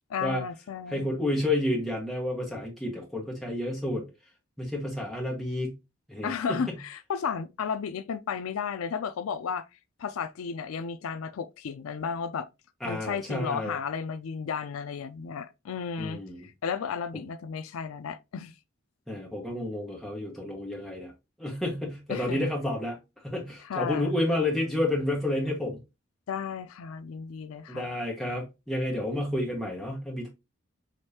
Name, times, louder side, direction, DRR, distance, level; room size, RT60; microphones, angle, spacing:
voice 1, 0.1-1.3 6.2-9.6 10.0-12.5 12.8-18.5 22.1-22.5 23.6-24.2 26.3-27.9, left 6 dB, 90° left, 0.4 m, -33 dB
voice 2, 0.9-4.1 4.6-5.7 6.1-6.8 12.8-13.7 16.0-16.4 17.1-17.2 19.1-21.1 21.4-23.0 23.2-25.8 27.7-30.3, left 1 dB, ahead, 1.2 m, -30 dB
5.1 x 3.1 x 2.8 m
head